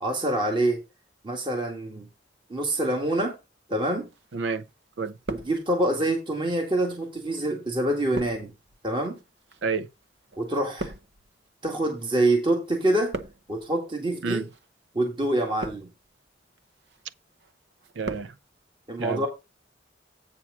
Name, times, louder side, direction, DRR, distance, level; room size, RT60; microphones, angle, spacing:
voice 1, 0.0-0.8 1.2-2.1 2.5-3.4 3.7-4.1 5.3-8.5 8.8-9.2 10.4-10.9 11.6-13.2 13.5-14.4 14.9-15.9 18.9-19.3, right 1 dB, 25° right, 1.7 m, -26 dB
sound 1, 4.1-4.7 5.0-6.0 6.7-12.4 12.7-13.7 14.4-14.7 15.3-16.1 16.6-17.0 17.4-18.4 18.6-18.7, right 2 dB, 65° right, 0.8 m, -39 dB
voice 2, 4.3-4.7 5.0-5.2 9.6-9.9 14.2-14.5 18.0-18.3 19.0-19.3, right 5 dB, 90° right, 0.5 m, -29 dB
8.6 x 4.4 x 6.1 m
head